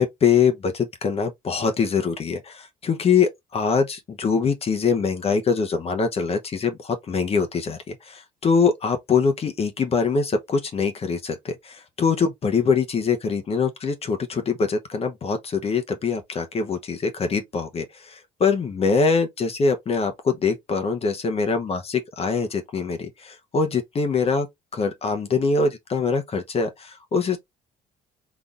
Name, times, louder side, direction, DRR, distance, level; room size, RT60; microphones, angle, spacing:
voice 1, 0.0-24.5 24.7-27.4, left 5 dB, 35° left, 0.8 m, -23 dB
3.9 x 3.3 x 2.4 m
cardioid pair, 110°, 17 cm